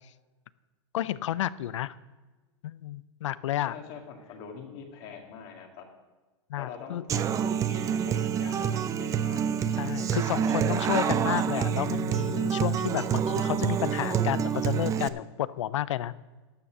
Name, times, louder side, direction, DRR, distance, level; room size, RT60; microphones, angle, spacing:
voice 1, 0.9-1.9 2.6-3.8 6.5-7.0 9.8-16.1, left 12 dB, 85° left, 18 dB, 0.5 m, -31 dB
voice 2, 3.7-5.9 6.6-9.6, left 6 dB, 50° left, 2 dB, 2.2 m, -44 dB
Human voice / Acoustic guitar, 7.1-15.1, right 8 dB, 20° right, 0.5 m, -27 dB
12.0 x 7.2 x 6.2 m, 1.3 s
supercardioid pair, 135°, 15 cm